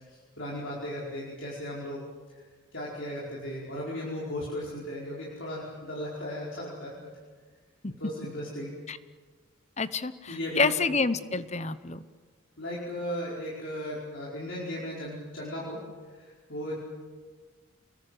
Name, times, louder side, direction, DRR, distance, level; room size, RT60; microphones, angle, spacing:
voice 1, 0.1-2.0 2.7-7.1 8.0-8.7 10.3-10.8 12.6-15.8 16.1-16.7, equal, 60° left, -5 dB, 5.0 m, -36 dB
voice 2, 9.8-12.0, left 4 dB, 30° left, 13 dB, 0.9 m, -28 dB
28.0 x 21.0 x 7.9 m, 1.5 s
head